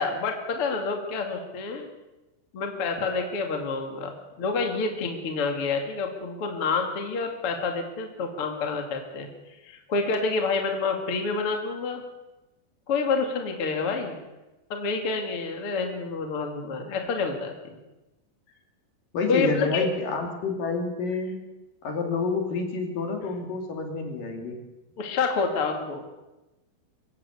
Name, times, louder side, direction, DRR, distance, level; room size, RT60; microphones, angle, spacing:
voice 1, 0.0-1.9 2.5-9.3 9.6-12.0 12.9-14.2 14.7-17.8 19.3-19.9 25.0-26.0, left 4 dB, 40° left, 3 dB, 2.8 m, -28 dB
voice 2, 19.1-21.4 21.8-24.6, left 4 dB, 60° left, 3 dB, 4.2 m, -28 dB
25.0 x 15.0 x 8.4 m, 1.0 s
omnidirectional pair, 4.7 m